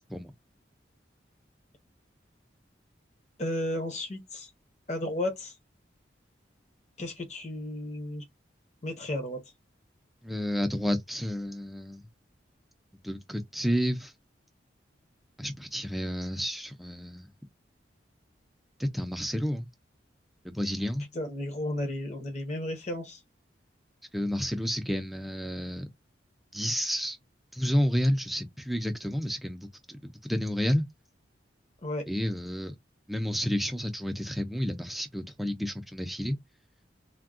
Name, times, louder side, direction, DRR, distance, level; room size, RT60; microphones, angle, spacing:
voice 1, 3.4-4.5 4.9-5.6 7.0-8.2 8.8-9.4 21.1-23.2 31.8-32.1, left 1 dB, 35° left, 0.8 m, -33 dB
voice 2, 10.2-12.1 13.0-14.1 15.4-17.3 18.8-19.7 20.4-21.1 24.1-25.9 26.5-27.2 27.5-30.8 32.1-32.7 33.1-36.4, equal, ahead, 0.4 m, -30 dB
3.5 x 2.2 x 2.4 m
head